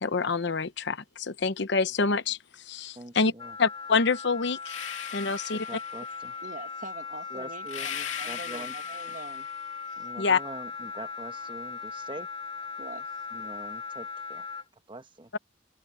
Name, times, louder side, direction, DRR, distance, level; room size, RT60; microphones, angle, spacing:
voice 1, 0.0-2.4 2.7-3.3 3.6-4.8 5.1-5.7 10.2-10.4 15.3-15.4, left 4 dB, 60° left, 0.9 m, -26 dB
voice 2, 2.9-3.6 5.2-6.3 7.3-7.9 8.3-8.7 10.0-12.3 13.3-14.5 14.9-15.3, right 1 dB, 25° right, 1.2 m, -43 dB
Wind instrument woodwind instrument, 3.4-14.7, left 5 dB, 30° left, 3.5 m, -39 dB
sound 1, 4.6-6.3 7.7-9.7, left 9 dB, 85° left, 2.4 m, -39 dB
voice 3, 6.4-9.5 9.9-10.1 12.8-13.2, right 2 dB, 45° right, 1.9 m, -44 dB
head